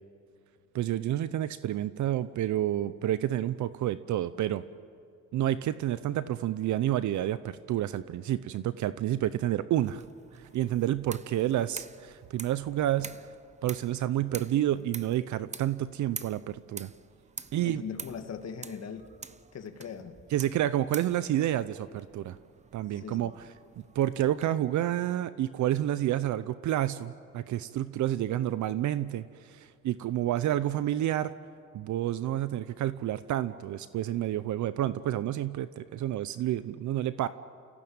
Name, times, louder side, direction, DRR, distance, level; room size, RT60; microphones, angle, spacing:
voice 1, 0.7-4.6 5.3-10.0 10.3-13.1 13.6-16.9 17.5-17.8 20.3-22.4 22.7-23.5 23.9-31.3 31.7-37.3, right 12 dB, 70° right, 14 dB, 0.7 m, -29 dB
sound 1, 9.8-24.5, right 5 dB, 25° right, 0.8 m, -47 dB
voice 2, 17.6-19.1 19.5-20.2 22.9-23.3 23.8-23.9, left 6 dB, 55° left, 6 dB, 2.1 m, -40 dB
29.5 x 16.0 x 8.9 m, 2.3 s
cardioid pair, 90°, 30 cm